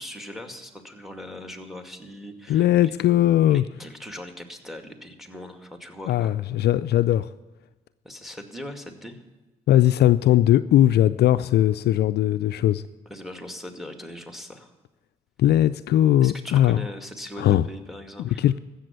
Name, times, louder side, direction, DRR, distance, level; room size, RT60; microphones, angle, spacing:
voice 1, 0.0-2.9 3.5-6.4 8.0-9.2 13.1-14.7 16.2-18.4, left 1 dB, ahead, 6 dB, 2.2 m, -40 dB
voice 2, 2.5-3.6 6.1-7.3 9.7-12.8 15.4-16.8 17.4-17.7 18.2-18.6, left 12 dB, 60° left, 14 dB, 0.4 m, -19 dB
15.0 x 7.0 x 9.5 m, 1.1 s
hypercardioid pair, 40°, 19 cm